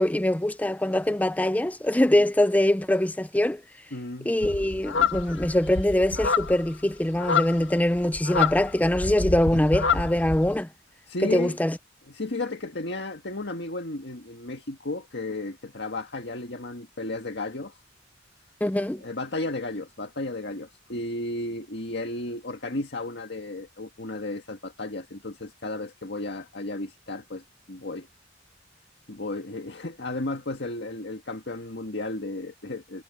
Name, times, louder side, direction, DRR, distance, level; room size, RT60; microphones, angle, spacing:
voice 1, 0.0-3.6 4.3-10.7 11.2-11.7 18.6-19.0, left 1 dB, 10° left, 0.5 m, -23 dB
voice 2, 3.9-4.3 11.1-11.6 12.1-17.8 19.0-28.1 29.1-33.0, left 2 dB, 60° left, 1.8 m, -34 dB
sound 1, 4.4-10.5, left 5 dB, 85° left, 1.6 m, -28 dB
head